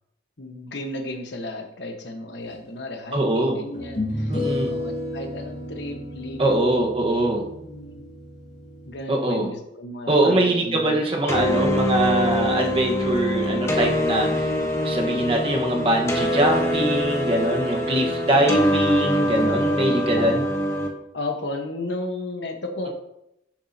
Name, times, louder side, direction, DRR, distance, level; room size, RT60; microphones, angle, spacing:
voice 1, 0.4-4.4 4.7-6.7 7.4-8.0 8.9-11.0 20.2-20.3 21.1-22.9, left 2 dB, 65° left, 4 dB, 1.2 m, -33 dB
Strumming Guitar, 2.7-2.8 3.7-9.0, left 1 dB, 40° left, 2.8 m, -32 dB
voice 2, 3.1-3.6 4.3-4.7 6.4-7.4 9.1-9.5 10.1-14.5 14.8-20.4, right 1 dB, 30° right, 0 dB, 1.3 m, -22 dB
sound 1, 11.3-20.9, equal, 15° left, 1.0 m, -24 dB
11.0 x 7.4 x 2.8 m, 0.82 s
head